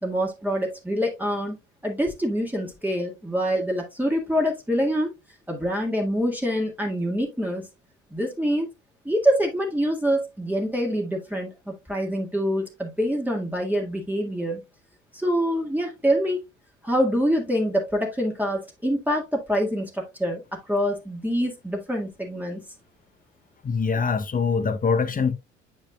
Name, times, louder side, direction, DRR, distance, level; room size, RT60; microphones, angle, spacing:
voice 1, 0.0-1.6 1.8-5.1 5.5-7.6 8.1-8.7 9.1-14.6 15.1-16.4 16.8-20.4 20.7-22.6, equal, 5° right, 1.8 m, -25 dB
voice 2, 23.6-25.3, left 5 dB, 25° left, 0.9 m, -23 dB
8.6 x 5.4 x 2.3 m
figure-of-eight pair, 55°, 35 cm